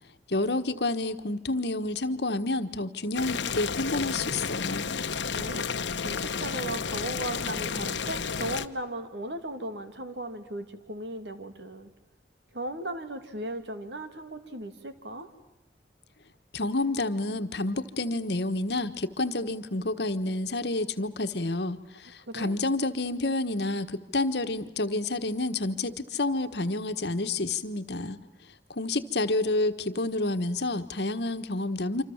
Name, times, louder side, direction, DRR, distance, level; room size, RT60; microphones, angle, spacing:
voice 1, 0.3-4.9 16.5-28.2 28.7-32.0, left 2 dB, 70° left, 10 dB, 1.4 m, -29 dB
Boiling, 3.1-8.7, left 5 dB, 90° left, 1.0 m, -31 dB
voice 2, 5.3-5.6 6.0-11.9 12.5-15.3 22.3-22.6, right 1 dB, 80° right, 9 dB, 2.5 m, -37 dB
27.5 x 26.0 x 7.3 m, 0.93 s
head